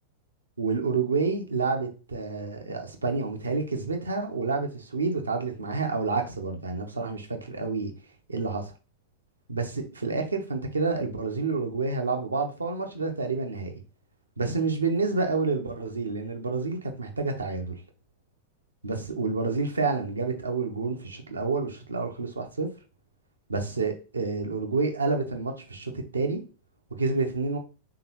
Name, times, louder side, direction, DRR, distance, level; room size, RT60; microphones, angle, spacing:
voice 1, 0.6-7.9 8.3-8.7 9.5-13.8 14.4-17.7 18.8-22.7 23.5-26.4 27.0-27.6, right 4 dB, 80° right, 0.7 m, -29 dB
3.8 x 3.6 x 2.9 m
figure-of-eight pair, 90°, 0 cm